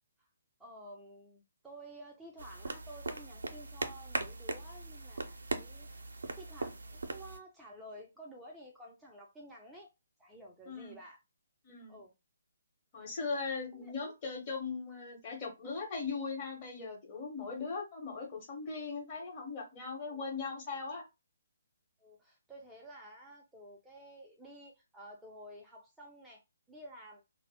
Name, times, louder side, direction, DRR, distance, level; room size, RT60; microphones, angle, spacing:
voice 1, 0.6-6.0 6.3-9.9 10.2-11.2 11.9-12.1 13.7-13.9 17.5-17.6 20.1-20.3 22.0-26.4 26.7-27.2, right 1 dB, 5° right, 0.4 m, -52 dB
sound 1, 2.4-7.4, right 3 dB, 70° right, 0.5 m, -40 dB
voice 2, 10.7-11.0 11.6-12.0 12.9-21.0, left 4 dB, 30° left, 0.9 m, -39 dB
2.6 x 2.0 x 2.7 m
figure-of-eight pair, 140°, 0 cm